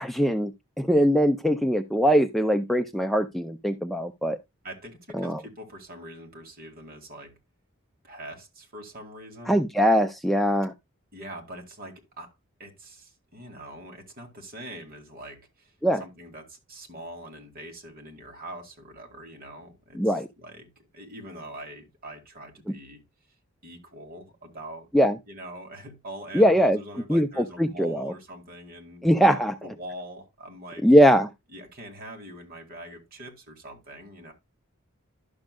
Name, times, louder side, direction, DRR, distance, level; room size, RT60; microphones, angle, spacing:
voice 1, 0.0-4.4 5.1-5.4 9.5-10.7 15.8-16.0 20.0-20.3 24.9-25.2 26.3-26.8 27.1-28.1 29.0-29.6 30.8-31.3, equal, ahead, 0.3 m, -21 dB
voice 2, 4.6-7.4 8.0-9.6 11.1-12.3 12.6-15.7 16.0-23.0 23.6-24.9 25.3-30.8 31.5-34.3, right 1 dB, 45° right, 2.1 m, -43 dB
11.5 x 6.3 x 2.2 m
head